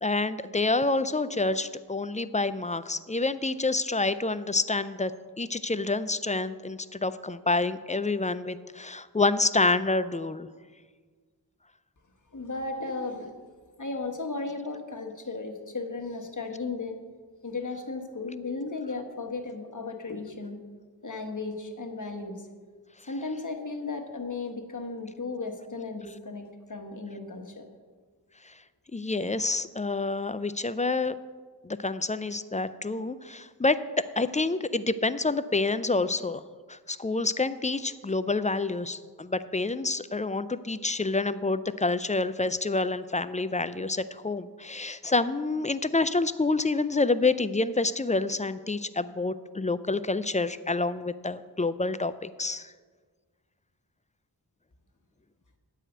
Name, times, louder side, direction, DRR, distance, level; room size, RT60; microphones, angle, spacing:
voice 1, 0.0-5.1 5.4-10.5 28.5-28.6 28.9-31.2 31.6-36.4 36.7-52.7, left 3 dB, 20° left, 13 dB, 0.3 m, -28 dB
voice 2, 12.3-13.3 13.8-17.0 17.4-20.6 21.0-22.5 23.1-27.7, left 3 dB, 45° left, 3 dB, 1.2 m, -35 dB
9.9 x 4.9 x 7.8 m, 1.5 s
wide cardioid pair, 60°, 41 cm